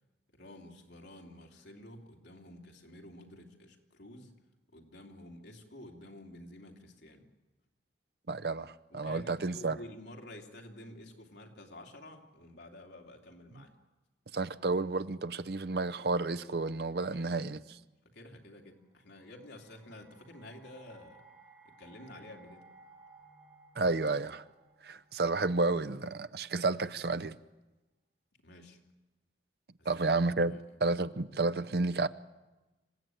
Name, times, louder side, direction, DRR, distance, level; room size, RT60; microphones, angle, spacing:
voice 1, 0.3-4.3 4.7-7.2 8.9-13.7 17.2-17.5 18.0-21.2 21.6-22.7 28.4-28.8 29.8-30.1 30.5-30.6, left 1 dB, 80° left, 3.0 m, -50 dB
voice 2, 8.3-9.8 14.3-17.6 23.8-24.4 24.8-27.3 29.9-32.1, right 3 dB, 60° right, 0.7 m, -31 dB
sound 1, 18.8-25.9, right 3 dB, 25° right, 7.4 m, -60 dB
26.5 x 15.5 x 9.2 m
head